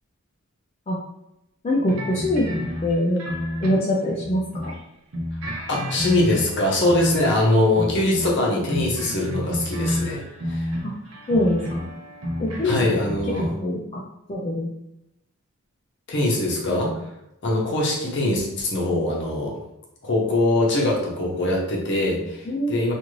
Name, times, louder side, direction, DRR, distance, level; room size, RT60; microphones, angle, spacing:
voice 1, 1.6-2.5 2.8-3.2 3.6-4.7 10.8-10.9 11.3-11.8 12.4-12.8 13.6-14.0 14.3-14.7 22.5-22.7, left 1 dB, 30° left, -5 dB, 0.4 m, -23 dB
sound 1, 1.9-4.8 5.1-7.4 7.7-13.5, equal, 75° right, 0.7 m, -31 dB
voice 2, 5.5-10.2 10.5-10.7 12.6-13.5 16.1-17.0 17.4-19.6 20.0-22.9, left 1 dB, 55° left, -3 dB, 0.8 m, -22 dB
2.5 x 2.5 x 3.0 m, 0.85 s
head